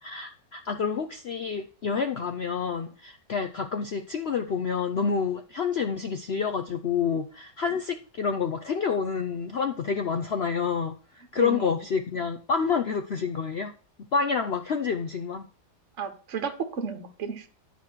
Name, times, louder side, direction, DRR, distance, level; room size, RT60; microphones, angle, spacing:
voice 1, 0.0-10.9 11.3-13.7 14.1-15.5, left 6 dB, 75° left, 6 dB, 0.6 m, -28 dB
voice 2, 11.4-11.8 16.0-17.5, right 6 dB, 45° right, 8 dB, 1.3 m, -33 dB
10.5 x 4.1 x 6.2 m, 0.39 s
omnidirectional pair, 1.9 m